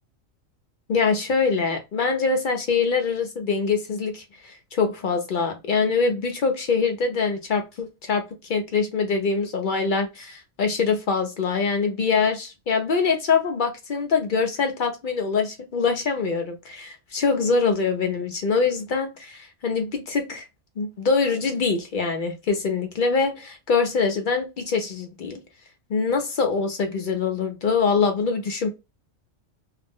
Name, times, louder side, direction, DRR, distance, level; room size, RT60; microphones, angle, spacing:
voice 1, 0.9-8.2 8.5-20.4 20.8-25.4 25.9-28.7, left 5 dB, 55° left, 0.6 m, -24 dB
2.5 x 2.0 x 3.4 m
omnidirectional pair, 1.3 m